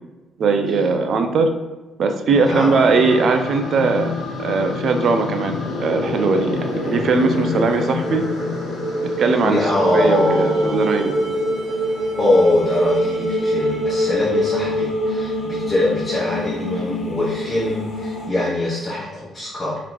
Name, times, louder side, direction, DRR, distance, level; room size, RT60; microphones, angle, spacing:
voice 1, 0.4-1.5 2.0-4.1 4.4-8.2 9.2-9.6 9.9-11.1, right 4 dB, 60° right, 6 dB, 0.4 m, -19 dB
voice 2, 2.3-2.8 9.4-11.4 12.2-19.8, left 2 dB, 25° left, -6 dB, 0.9 m, -22 dB
sound 1, 2.7-18.3, left 3 dB, 80° left, 0.8 m, -28 dB
sound 2, 7.0-16.2, right 1 dB, 85° right, 1.1 m, -25 dB
3.9 x 3.0 x 3.0 m, 1.2 s
cardioid pair, 90°, 0 cm